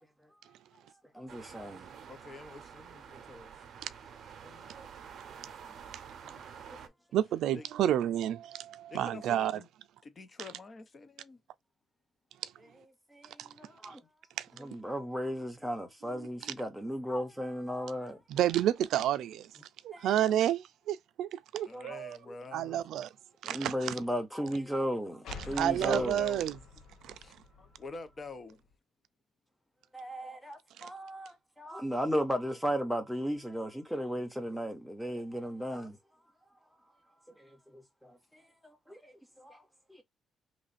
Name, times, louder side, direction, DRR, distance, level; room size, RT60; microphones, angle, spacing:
voice 1, 1.1-1.9 4.4-4.9 6.2-6.4 6.7-6.8 13.1-14.0 14.6-18.2 19.9-20.1 21.7-22.0 23.4-26.2 29.9-36.0 37.7-39.6, equal, ahead, 0.8 m, -36 dB
sound 1, 1.3-6.9, right 7 dB, 55° right, 0.7 m, -49 dB
voice 2, 2.1-3.6 7.5-7.7 8.9-9.7 10.0-11.4 21.7-22.8 25.8-26.5 27.1-28.6, left 3 dB, 30° left, 0.7 m, -46 dB
voice 3, 7.1-9.5 12.4-12.5 13.4-13.5 14.4-14.5 16.1-16.5 18.3-19.5 19.8-22.2 22.5-23.1 23.4-23.9 25.6-26.5 27.0-27.2 30.8-30.9, right 11 dB, 85° right, 0.3 m, -30 dB
sound 2, 25.2-28.7, left 4 dB, 75° left, 0.8 m, -49 dB
3.1 x 2.5 x 4.0 m
cardioid pair, 145°, 0 cm